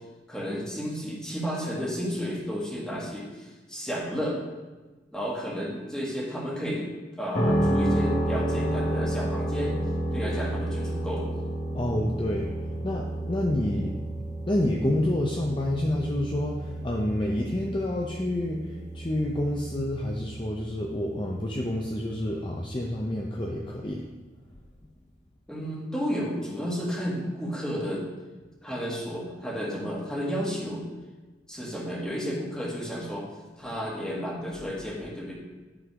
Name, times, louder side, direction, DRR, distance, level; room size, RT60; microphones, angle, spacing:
voice 1, 0.3-4.4 5.1-6.9 7.2-9.7 10.1-11.3 25.5-28.1 28.6-30.9 31.5-33.3 33.6-35.3, equal, 5° left, -5 dB, 1.8 m, -32 dB
sound 1, 7.3-23.2, right 1 dB, 45° left, 1.0 m, -31 dB
voice 2, 11.7-12.5 12.8-13.9 14.5-24.0, left 1 dB, 25° left, -1 dB, 0.6 m, -28 dB
11.0 x 3.9 x 4.7 m, 1.2 s
head